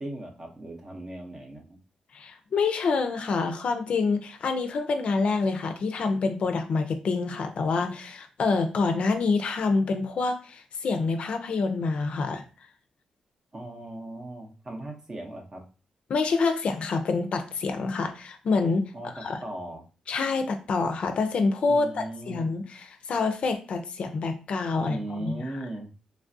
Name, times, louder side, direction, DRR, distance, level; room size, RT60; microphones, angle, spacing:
voice 1, 0.0-1.8 13.5-15.6 18.9-19.8 21.7-22.5 24.8-25.9, right 1 dB, 30° right, 2 dB, 0.6 m, -38 dB
voice 2, 2.1-12.4 16.1-18.9 19.2-19.4 20.1-25.4, left 4 dB, 60° left, 6 dB, 0.4 m, -27 dB
3.2 x 2.3 x 2.5 m, 0.36 s
wide cardioid pair, 120°, 2 cm